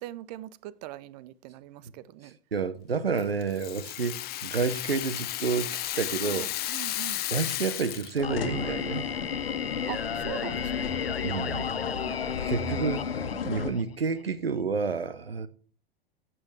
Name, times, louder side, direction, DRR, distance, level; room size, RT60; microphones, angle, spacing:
voice 1, 0.0-2.4 6.2-7.2 9.9-11.0 12.0-12.8, right 14 dB, 45° right, 0.5 m, -42 dB
voice 2, 2.2-6.5 7.3-9.1 11.2-11.7 12.4-13.1 13.4-15.5, right 5 dB, 85° right, 0.9 m, -30 dB
Rattle (instrument), 3.2-8.3, left 14 dB, 35° left, 0.8 m, -33 dB
Singing, 8.2-14.2, left 7 dB, 90° left, 0.5 m, -34 dB
sound 1, 8.2-13.7, left 6 dB, 75° left, 1.4 m, -34 dB
16.0 x 6.2 x 3.3 m
figure-of-eight pair, 90°, 29 cm